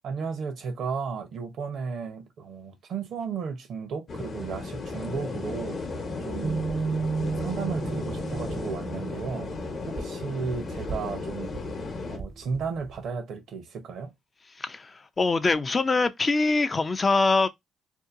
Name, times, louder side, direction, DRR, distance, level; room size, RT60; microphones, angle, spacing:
voice 1, 0.0-5.8 6.2-6.6 7.4-11.5 12.1-14.1, right 5 dB, 70° right, 0.7 m, -34 dB
sound 1, 4.1-12.2, left 3 dB, 50° left, 0.8 m, -35 dB
sound 2, 6.4-12.9, right 4 dB, 40° right, 0.4 m, -33 dB
voice 2, 14.5-17.5, left 3 dB, 30° left, 0.4 m, -24 dB
2.7 x 2.2 x 2.5 m
cardioid pair, 90°, 0 cm